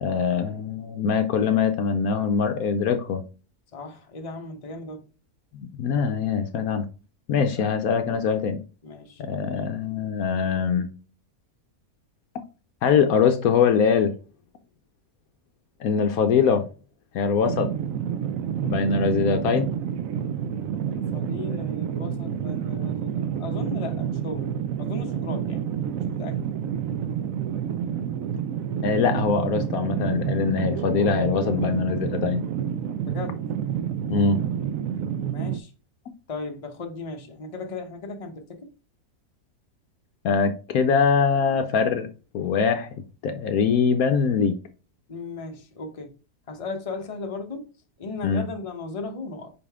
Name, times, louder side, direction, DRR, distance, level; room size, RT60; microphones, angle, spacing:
voice 1, 0.0-3.2 5.5-6.9 7.3-8.6 9.2-10.9 12.8-14.1 15.8-16.7 17.1-17.7 18.6-19.7 28.8-32.4 34.1-34.4 40.2-42.1 42.3-42.9 43.2-44.6 48.2-48.5, left 6 dB, 70° left, 1.0 m, -22 dB
voice 2, 3.7-5.1 7.6-7.7 8.8-9.2 20.9-24.5 24.8-26.4 33.0-33.4 35.2-35.7 36.3-38.7 45.1-46.1 46.5-47.7 48.0-49.5, left 3 dB, 25° left, 0.9 m, -36 dB
sound 1, 17.4-35.6, right 9 dB, 70° right, 0.8 m, -29 dB
5.2 x 5.1 x 3.5 m
omnidirectional pair, 1.7 m